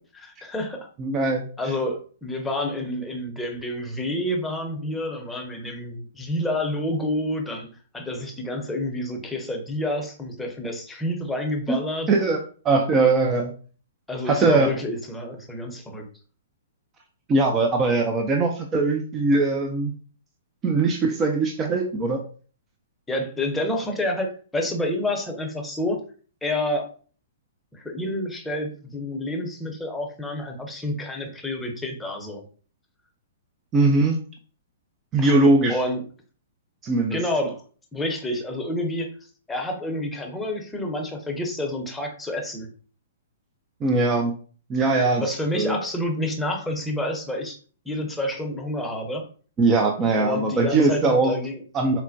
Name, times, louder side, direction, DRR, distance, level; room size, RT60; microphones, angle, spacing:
voice 1, 0.2-0.9 1.6-12.1 14.1-16.1 23.1-26.0 26.4-26.8 27.7-32.4 35.2-35.3 35.7-36.0 37.1-37.6 37.9-39.1 39.5-42.7 45.2-47.6 47.8-49.2 50.2-51.6, left 1 dB, 10° left, 1 dB, 0.8 m, -28 dB
voice 2, 1.0-1.5 11.7-11.8 12.1-12.4 12.6-13.5 14.3-14.7 17.3-19.9 20.6-22.2 33.7-34.2 35.1-35.7 36.8-37.2 43.8-44.3 44.7-45.2 45.6-45.8 49.6-51.3 51.7-52.0, right 3 dB, 25° right, 2 dB, 0.5 m, -20 dB
4.2 x 2.1 x 2.6 m, 0.41 s
figure-of-eight pair, 115°, 0 cm